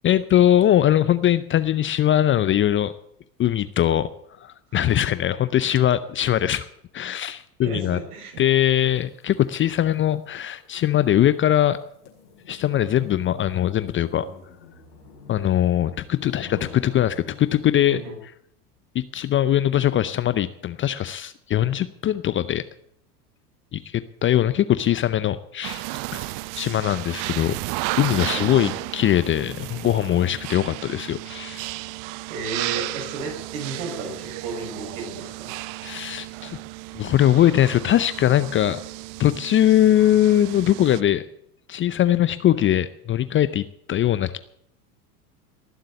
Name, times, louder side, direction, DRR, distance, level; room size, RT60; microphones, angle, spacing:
voice 1, 0.0-2.9 3.4-4.1 4.4-6.7 6.9-8.0 8.4-11.8 12.5-14.3 15.3-18.0 18.9-22.6 23.7-25.8 26.1-26.3 26.6-27.6 28.0-31.7 35.8-36.6 36.9-38.8 39.2-41.2 41.7-44.4, left 11 dB, 25° left, 14 dB, 0.6 m, -21 dB
voice 2, 4.7-5.1 7.6-8.5 17.9-18.2 28.2-28.7 32.3-35.5, right 4 dB, 60° right, 1 dB, 6.9 m, -34 dB
sound 1, 8.6-18.0, left 5 dB, 85° left, 5.3 m, -46 dB
sound 2, 25.6-41.0, right 19 dB, 45° right, 0.6 m, -33 dB
19.5 x 7.5 x 8.2 m, 0.71 s
hypercardioid pair, 90°, 47 cm